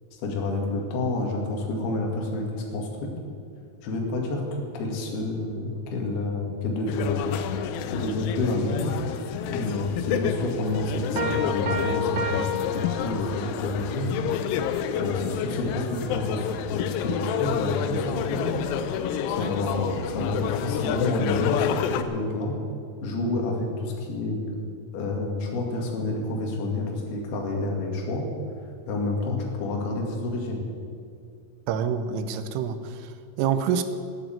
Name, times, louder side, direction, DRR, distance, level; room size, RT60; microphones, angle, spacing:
voice 1, 0.2-3.1 3.8-7.3 7.9-8.9 9.5-14.1 15.0-18.5 19.3-22.6 23.0-24.4 24.9-28.2 28.9-30.6, left 2 dB, 55° left, 0 dB, 3.9 m, -29 dB
sound 1, 6.9-22.0, left 8 dB, 85° left, 3.1 m, -29 dB
sound 2, 11.2-13.7, left 2 dB, 60° right, 2.7 m, -30 dB
voice 2, 31.7-33.8, right 7 dB, 90° right, 10 dB, 3.4 m, -27 dB
14.0 x 10.0 x 8.9 m, 2.3 s
omnidirectional pair, 5.8 m